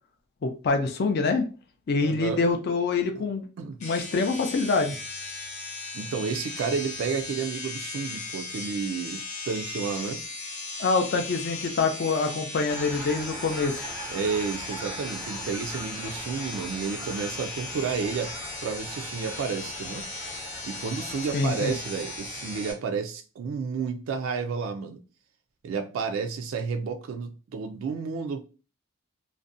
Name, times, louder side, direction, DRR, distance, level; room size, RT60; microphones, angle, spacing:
voice 1, 0.4-1.5 1.9-3.5 3.8-5.0 10.8-13.8 21.3-21.7, left 4 dB, 50° left, 0.4 m, -25 dB
voice 2, 2.0-2.4 3.2-3.3 3.6-3.8 5.9-10.2 14.1-18.3 18.6-20.1 20.7-25.0 25.6-28.5, right 5 dB, 70° right, 0.3 m, -31 dB
sound 1, 3.8-22.7, left 3 dB, 35° left, 0.8 m, -37 dB
sound 2, 12.7-22.8, right 2 dB, 5° right, 0.5 m, -42 dB
2.5 x 2.1 x 2.5 m
head